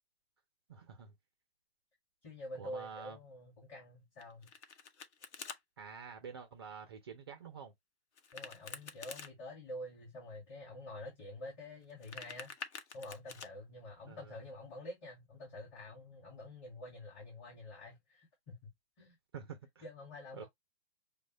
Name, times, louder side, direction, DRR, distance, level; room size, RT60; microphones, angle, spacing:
voice 1, 0.7-1.1 2.6-3.2 5.8-7.7 14.1-14.4 19.3-19.9 20.3-20.4, right 6 dB, 25° right, 0.3 m, -48 dB
voice 2, 2.2-4.5 8.3-12.5 12.9-18.7 19.0-19.2 19.8-20.5, left 1 dB, 30° left, 2.2 m, -48 dB
Domestic sounds home sounds, 4.2-5.6 8.2-9.3 11.8-13.5, left 5 dB, 80° left, 0.9 m, -48 dB
6.2 x 2.1 x 3.1 m
hypercardioid pair, 155°, 34 cm